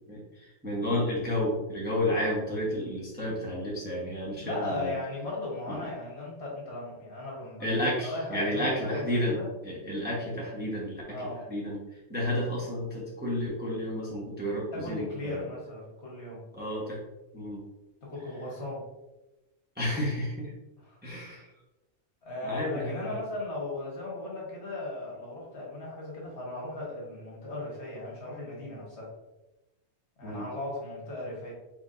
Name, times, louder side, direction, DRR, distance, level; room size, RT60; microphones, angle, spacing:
voice 1, 0.0-4.9 7.6-9.4 9.6-11.0 11.5-11.8 12.1-15.4 16.5-17.0 17.3-17.6 19.8-20.5 21.0-21.5 22.4-23.2 30.2-30.5, left 1 dB, 10° right, -5 dB, 0.9 m, -31 dB
voice 2, 4.4-9.5 11.1-11.4 14.7-16.5 18.0-18.8 20.8-21.0 22.2-29.1 30.2-31.5, left 2 dB, 60° left, -4 dB, 1.7 m, -37 dB
4.7 x 3.7 x 2.6 m, 1.0 s
omnidirectional pair, 1.3 m